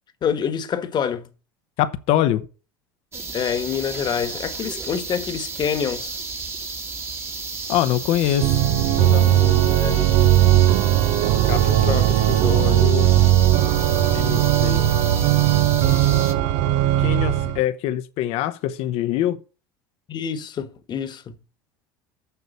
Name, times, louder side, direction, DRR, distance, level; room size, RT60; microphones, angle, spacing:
voice 1, 0.2-1.3 3.3-6.2 9.7-9.9 11.5-12.6 20.1-21.4, left 7 dB, 40° left, 1.5 m, -27 dB
voice 2, 1.8-2.4 7.7-10.1 11.5-11.6 12.4-13.1 13.9-14.8 17.0-19.4, left 12 dB, 60° left, 0.9 m, -25 dB
sound 1, 3.1-16.3, right 3 dB, 20° right, 1.5 m, -33 dB
Organ, 8.4-17.6, right 13 dB, 60° right, 0.8 m, -18 dB
7.0 x 6.7 x 7.9 m
hypercardioid pair, 80°, 12 cm